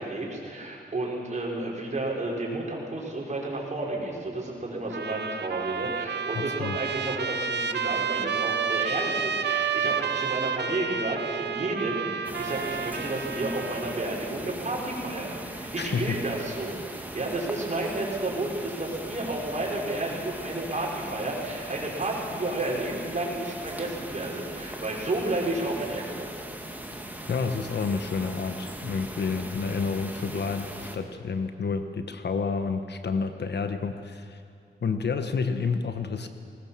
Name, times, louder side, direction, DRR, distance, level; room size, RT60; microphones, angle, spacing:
voice 1, 0.0-26.3, right 2 dB, 40° right, -2 dB, 5.4 m, -31 dB
Trumpet, 4.9-14.0, right 6 dB, 65° right, 0.9 m, -30 dB
voice 2, 6.3-6.8 15.8-16.2 26.9-27.0 27.3-34.4 34.8-36.3, left 5 dB, 65° left, 8 dB, 1.3 m, -29 dB
sound 1, 12.2-31.0, right 1 dB, 10° right, 2.1 m, -39 dB
20.0 x 20.0 x 7.4 m, 2.4 s
wide cardioid pair, 90°, 19 cm